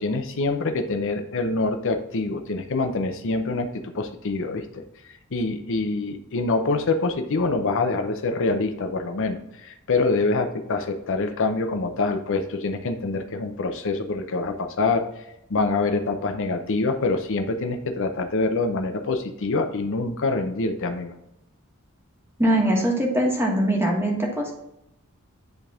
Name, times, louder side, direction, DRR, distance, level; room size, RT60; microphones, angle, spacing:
voice 1, 0.0-3.7 3.9-4.8 5.3-15.2 15.5-21.1, left 3 dB, 60° left, 6 dB, 0.6 m, -25 dB
voice 2, 22.4-24.5, right 1 dB, 10° right, -1 dB, 1.5 m, -22 dB
10.5 x 3.4 x 3.6 m, 0.85 s
head